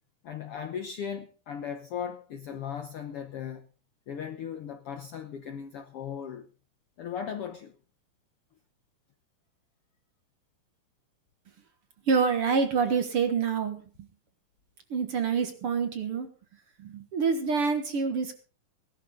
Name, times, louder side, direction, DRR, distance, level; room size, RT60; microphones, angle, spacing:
voice 1, 0.2-3.7 4.1-6.5 7.0-7.8, left 8 dB, 70° left, 1.4 m, -37 dB
voice 2, 12.1-14.1 14.9-16.3 16.8-18.3, right 5 dB, 55° right, 1.9 m, -27 dB
18.0 x 12.5 x 3.8 m
omnidirectional pair, 3.7 m